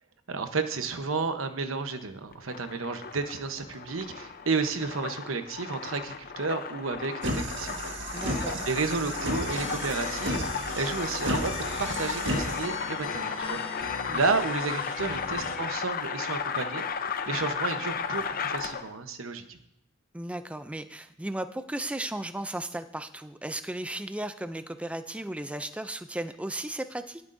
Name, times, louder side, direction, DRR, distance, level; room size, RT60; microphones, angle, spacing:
voice 1, 0.3-7.8 8.0-8.1 8.6-16.8 17.3-19.6, right 4 dB, 85° right, 8 dB, 0.9 m, -32 dB
sound 1, 2.3-19.0, left 6 dB, 45° left, 0.6 m, -34 dB
sound 2, 7.2-12.6, right 1 dB, 65° right, 1.7 m, -33 dB
voice 2, 8.1-8.6 14.1-14.2 20.1-27.2, right 1 dB, 5° right, 10 dB, 0.4 m, -35 dB
sound 3, 9.3-15.6, left 4 dB, 80° left, 1.3 m, -40 dB
19.5 x 8.1 x 2.6 m, 0.80 s
head